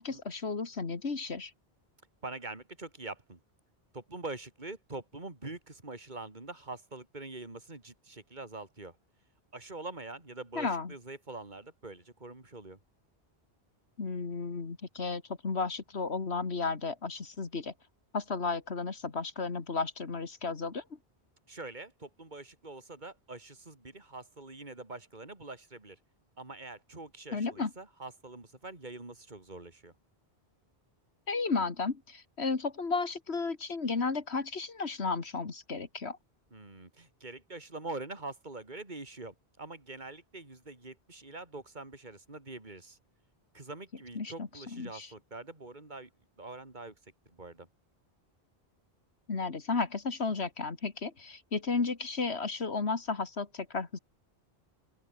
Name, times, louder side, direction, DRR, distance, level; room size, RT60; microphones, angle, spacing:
voice 1, 0.0-1.5 10.6-10.9 14.0-17.7 18.1-20.8 27.3-27.7 31.3-36.2 44.2-45.1 49.3-54.0, left 4 dB, 80° left, 2.3 m, -33 dB
voice 2, 2.2-3.4 3.9-9.0 9.5-12.8 21.5-26.0 26.4-29.9 36.5-43.0 43.5-46.1 46.4-46.9 47.3-47.7, right 2 dB, 45° right, 3.6 m, -44 dB
open air
omnidirectional pair, 1.1 m